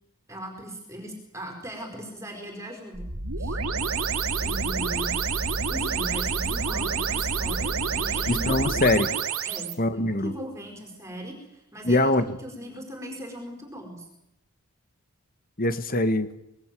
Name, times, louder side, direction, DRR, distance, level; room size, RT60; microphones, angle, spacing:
voice 1, 0.3-3.6 4.4-5.2 5.7-8.8 9.4-14.1, equal, 15° right, 3 dB, 4.9 m, -39 dB
sound 1, 2.9-9.7, right 5 dB, 75° right, 2.5 m, -28 dB
voice 2, 8.3-9.1 9.8-10.3 11.8-12.2 15.6-16.3, left 2 dB, 40° left, 10 dB, 1.7 m, -23 dB
26.5 x 21.5 x 7.8 m, 0.86 s
head